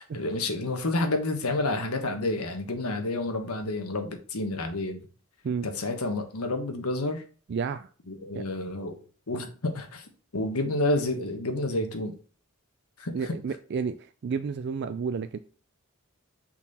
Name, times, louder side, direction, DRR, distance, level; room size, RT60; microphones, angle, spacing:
voice 1, 0.0-5.0 5.6-7.2 8.1-9.0 9.3-12.1 13.0-13.3, left 2 dB, 85° left, 1.3 m, -29 dB
voice 2, 7.5-7.9 8.3-8.4 13.1-15.4, right 5 dB, 50° right, 0.3 m, -31 dB
6.0 x 4.1 x 4.2 m
head